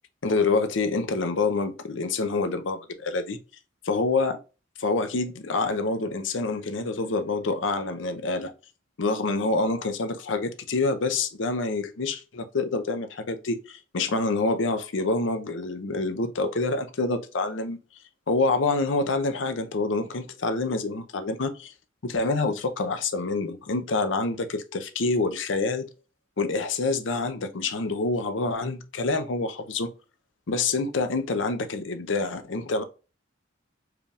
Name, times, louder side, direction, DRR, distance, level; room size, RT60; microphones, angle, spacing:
voice 1, 0.2-3.4 3.8-4.4 4.8-8.5 9.0-17.8 18.3-21.7 22.0-25.8 26.4-29.9 30.5-32.8, left 3 dB, 75° left, 0.6 m, -27 dB
4.8 x 3.4 x 2.4 m
head